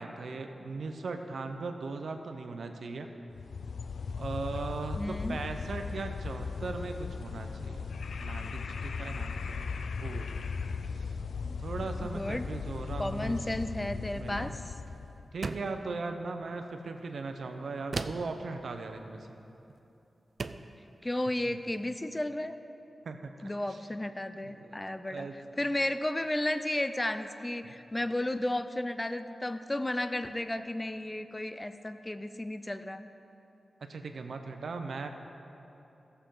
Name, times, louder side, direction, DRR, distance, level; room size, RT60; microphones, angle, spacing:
voice 1, 0.0-3.1 4.2-7.8 8.2-10.3 10.9-11.1 11.6-13.4 13.8-14.6 15.3-19.3 21.5-21.6 23.0-23.8 24.4-24.8 25.1-25.4 33.8-35.1, right 3 dB, 80° right, 6 dB, 0.7 m, -39 dB
sound 1, 3.3-15.2, left 5 dB, 85° left, 0.3 m, -37 dB
voice 2, 5.0-5.4 11.5-11.6 12.0-12.5 13.0-14.6 21.0-22.5 23.4-25.3 25.6-33.0, left 1 dB, 20° left, 10 dB, 0.4 m, -33 dB
sound 2, 15.4-15.8 17.9-18.4 19.7-19.8 20.4-20.7, right 4 dB, 60° right, 0.4 m, -36 dB
17.0 x 6.8 x 3.8 m, 2.9 s
cardioid pair, 70°, 0 cm